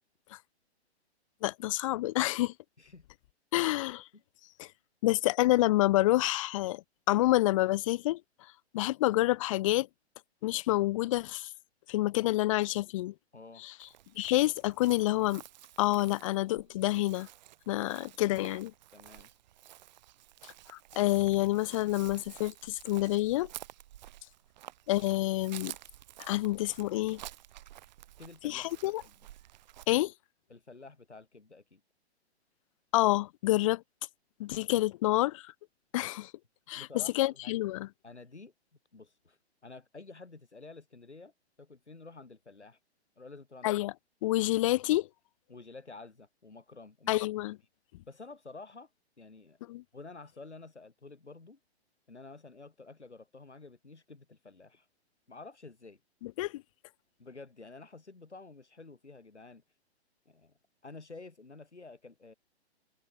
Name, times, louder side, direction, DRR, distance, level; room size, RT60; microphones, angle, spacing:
voice 1, 1.4-2.5 3.5-4.0 4.6-4.7 5.0-8.2 8.7-9.9 10.4-11.5 11.9-13.1 13.6-13.7 14.2-15.4 15.8-17.3 17.7-18.7 20.7-23.5 24.9-25.7 26.2-27.2 28.4-29.0 29.9-30.1 32.9-33.8 34.4-35.4 35.9-36.3 36.7-36.9 37.1-37.9 43.6-43.9 44.2-45.1 47.1-47.6 49.7-49.8 56.2-56.5, left 17 dB, 30° left, 0.8 m, -28 dB
voice 2, 13.3-13.6 18.2-18.4 18.9-19.3 28.2-29.1 30.5-31.8 36.7-37.6 38.0-38.5 38.9-41.3 41.6-42.8 43.2-43.7 45.5-47.1 48.1-48.9 49.2-49.6 49.9-51.6 52.1-54.9 55.3-56.0 57.2-59.6 60.3-60.5 60.8-62.3, left 3 dB, 80° left, 5.5 m, -50 dB
Chirp tweet, 13.8-29.9, right 14 dB, 40° right, 1.6 m, -51 dB
figure-of-eight pair, 125°, 33 cm